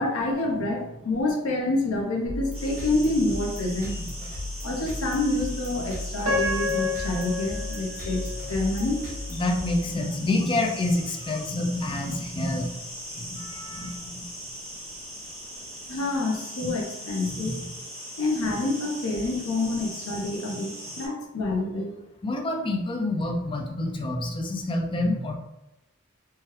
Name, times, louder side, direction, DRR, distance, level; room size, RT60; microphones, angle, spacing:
voice 1, 0.0-4.0 4.6-9.4 15.9-17.6 18.2-21.9, left 2 dB, 80° left, 1 dB, 0.6 m, -27 dB
sound 1, 2.3-10.4, left 2 dB, 35° right, 0.7 m, -36 dB
sound 2, 2.5-21.1, equal, 5° left, 1.1 m, -40 dB
Piano, 6.3-9.3 9.8-9.9 10.6-10.8, left 3 dB, 65° right, 0.8 m, -30 dB
voice 2, 9.3-12.7 13.2-14.3 16.6-16.7 17.2-17.7 20.5-20.6 22.2-25.3, left 2 dB, 25° left, 2 dB, 0.4 m, -28 dB
3.0 x 2.2 x 3.1 m, 0.93 s
head